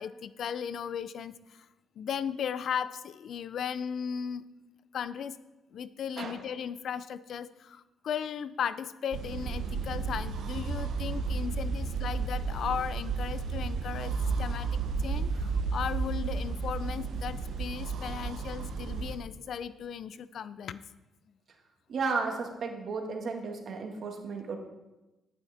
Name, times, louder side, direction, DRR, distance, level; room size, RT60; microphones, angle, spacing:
voice 1, 0.0-1.7 2.0-4.4 4.9-5.4 5.7-20.8, left 8 dB, 65° left, 16 dB, 0.4 m, -36 dB
sound 1, 9.1-19.2, right 4 dB, 75° right, 1.0 m, -32 dB
voice 2, 21.9-24.6, right 4 dB, 55° right, 3 dB, 1.7 m, -33 dB
11.0 x 9.1 x 3.5 m, 1.0 s
cardioid pair, 90°, 0 cm